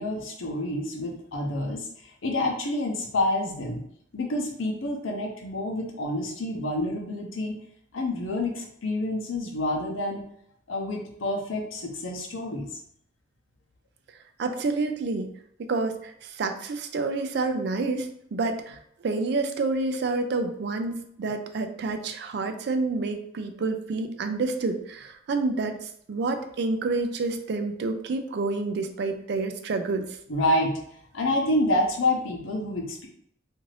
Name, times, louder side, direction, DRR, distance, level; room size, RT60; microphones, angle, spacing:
voice 1, 0.0-3.8 4.1-7.6 7.9-10.2 10.7-12.7 30.3-30.8 31.1-33.1, left 1 dB, 85° left, 1 dB, 0.7 m, -28 dB
voice 2, 14.4-15.3 15.6-30.0, right 3 dB, 55° right, 7 dB, 0.3 m, -28 dB
2.5 x 2.4 x 3.2 m, 0.70 s
head